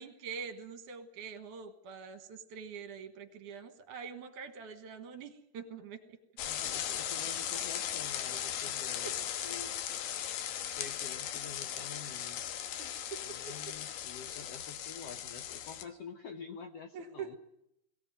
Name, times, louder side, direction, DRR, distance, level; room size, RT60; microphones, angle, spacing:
voice 1, 0.0-6.2 9.0-9.2 12.8-13.6 16.9-17.4, right 6 dB, 65° right, 8 dB, 2.9 m, -45 dB
sound 1, 6.4-15.8, left 10 dB, 85° left, 2.8 m, -38 dB
voice 2, 6.5-9.1 9.4-9.8 10.8-12.5 13.2-17.4, left 6 dB, 70° left, 7 dB, 1.5 m, -48 dB
21.5 x 16.5 x 9.3 m, 0.80 s
omnidirectional pair, 3.9 m